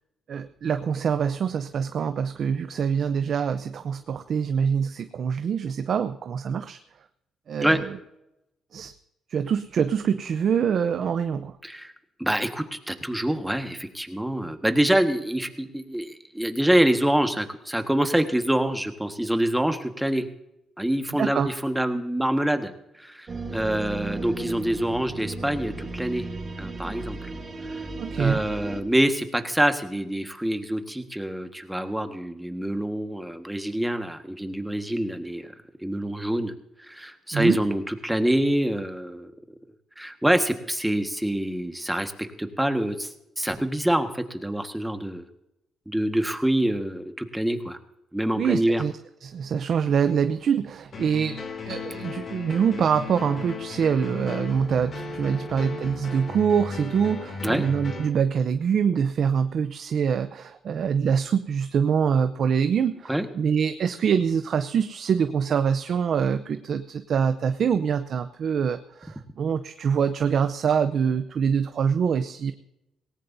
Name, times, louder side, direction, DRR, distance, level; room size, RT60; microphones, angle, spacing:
voice 1, 0.3-6.8 7.5-8.0 8.7-8.9 9.3-11.6 21.2-21.5 28.0-28.4 37.3-37.6 48.4-48.9 49.2-51.4 51.7-72.5, right 7 dB, 60° right, 9 dB, 0.7 m, -25 dB
voice 2, 11.6-11.9 12.2-20.3 20.8-26.3 26.6-27.3 27.7-27.8 28.2-35.5 35.8-36.5 36.9-39.3 40.0-43.1 43.4-45.2 45.9-47.8 48.1-48.8 57.4-57.6 63.1-63.3, right 1 dB, 5° right, 7 dB, 1.6 m, -26 dB
sound 1, 23.3-28.8, right 3 dB, 35° right, 2.8 m, -35 dB
sound 2, 50.9-58.1, left 3 dB, 45° left, 2.6 m, -36 dB
18.5 x 17.5 x 2.7 m, 0.87 s
cardioid pair, 90°, 0 cm